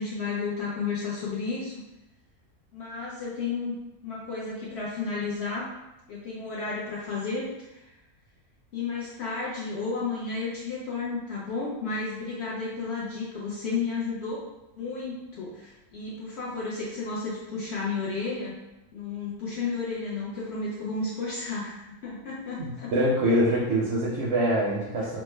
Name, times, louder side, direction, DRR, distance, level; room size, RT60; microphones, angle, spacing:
voice 1, 0.0-1.8 2.7-3.8 4.0-5.7 6.1-7.9 8.7-14.4 14.7-18.6 18.9-22.9, left 4 dB, 65° left, -6 dB, 0.7 m, -32 dB
voice 2, 22.6-25.2, equal, 65° right, -5 dB, 0.6 m, -24 dB
3.1 x 2.0 x 3.2 m, 0.95 s
omnidirectional pair, 1.6 m